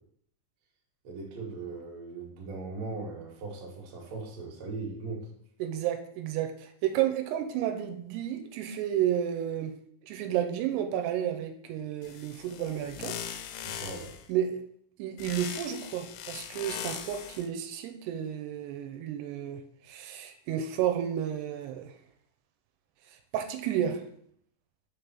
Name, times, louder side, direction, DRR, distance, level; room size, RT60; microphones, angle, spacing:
voice 1, 1.0-5.2 13.6-14.1, right 3 dB, 60° right, -1 dB, 1.8 m, -39 dB
voice 2, 5.6-9.8 10.0-13.2 14.3-14.6 15.0-21.9 23.3-24.0, right 10 dB, 90° right, 6 dB, 2.7 m, -31 dB
sound 1, 12.0-14.3 15.2-17.5, left 9 dB, 80° left, 2.6 m, -40 dB
6.3 x 3.4 x 5.7 m, 0.66 s
omnidirectional pair, 4.7 m